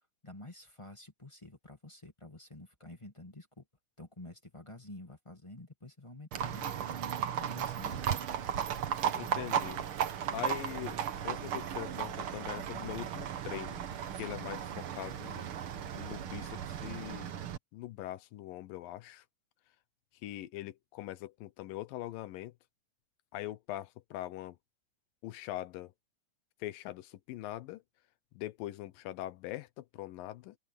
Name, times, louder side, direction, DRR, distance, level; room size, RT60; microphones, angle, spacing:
voice 1, 0.2-3.6 4.0-6.7 7.4-8.1, left 1 dB, 15° left, 1.4 m, -49 dB
Livestock farm animals working animals, 6.3-17.6, right 9 dB, 55° right, 1.5 m, -36 dB
voice 2, 9.2-9.8 10.3-13.8 14.1-15.5 15.9-17.4 17.7-19.2 20.2-22.5 23.3-24.6 25.2-25.9 26.6-27.8 28.3-30.6, left 15 dB, 90° left, 2.6 m, -42 dB
open air
omnidirectional pair, 3.9 m